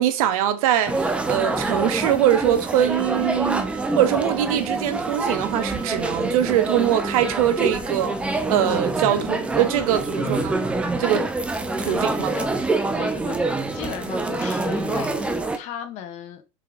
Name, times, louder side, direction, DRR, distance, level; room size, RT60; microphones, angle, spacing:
voice 1, 0.0-3.6 4.0-10.5 11.0-11.3 11.8-12.3, right 11 dB, 70° right, 1.5 m, -22 dB
sound 1, 0.9-15.6, right 2 dB, 5° right, 0.8 m, -26 dB
voice 2, 10.1-10.6 11.8-12.5 12.9-16.4, left 9 dB, 40° left, 1.5 m, -36 dB
7.1 x 4.5 x 5.0 m
supercardioid pair, 170°, 19 cm